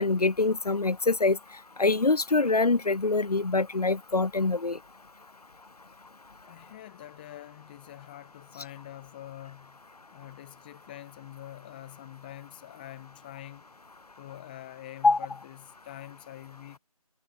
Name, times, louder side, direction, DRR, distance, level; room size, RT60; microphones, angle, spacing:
voice 1, 0.0-1.4 1.8-4.8 15.0-15.2, left 3 dB, 90° left, 0.8 m, -24 dB
voice 2, 6.4-9.8 10.1-13.7 14.2-16.8, left 13 dB, 15° left, 3.7 m, -45 dB
figure-of-eight pair, 165°, 19 cm